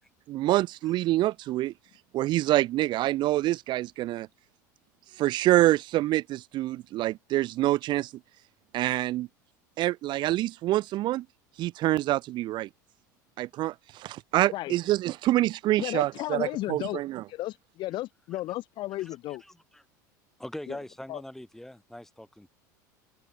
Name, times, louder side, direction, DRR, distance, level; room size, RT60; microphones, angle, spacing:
voice 1, 0.3-1.7 2.1-4.3 5.2-8.1 8.7-9.3 9.8-11.2 11.6-12.7 13.4-17.2, right 16 dB, 50° right, 0.8 m, -26 dB
voice 2, 15.8-17.0 17.3-19.4 20.7-20.8 21.1-21.2, left 16 dB, 50° left, 0.9 m, -34 dB
voice 3, 19.0-19.8 20.4-22.5, left 1 dB, 5° left, 3.6 m, -43 dB
hypercardioid pair, 85°, 10 cm